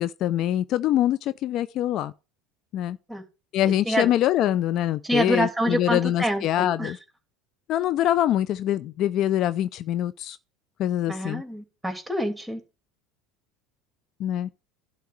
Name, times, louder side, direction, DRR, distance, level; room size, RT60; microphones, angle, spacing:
voice 1, 0.0-2.1 2.7-3.0 3.5-7.0 7.7-10.4 10.8-11.4 14.2-14.5, left 12 dB, 50° left, 0.5 m, -24 dB
voice 2, 3.6-4.1 5.0-6.9 11.1-12.6, equal, 5° right, 2.8 m, -27 dB
11.5 x 4.2 x 7.8 m
hypercardioid pair, 75°, 0 cm